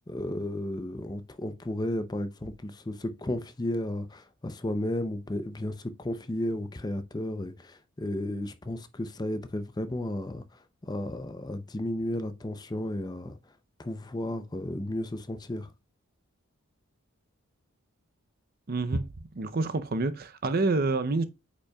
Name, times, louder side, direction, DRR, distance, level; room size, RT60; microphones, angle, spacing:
voice 1, 0.1-10.4 10.8-13.4 13.8-15.7, left 1 dB, 20° left, 0.5 m, -33 dB
voice 2, 18.7-19.0 19.4-21.2, right 3 dB, 45° right, 0.6 m, -27 dB
8.4 x 5.2 x 2.3 m
head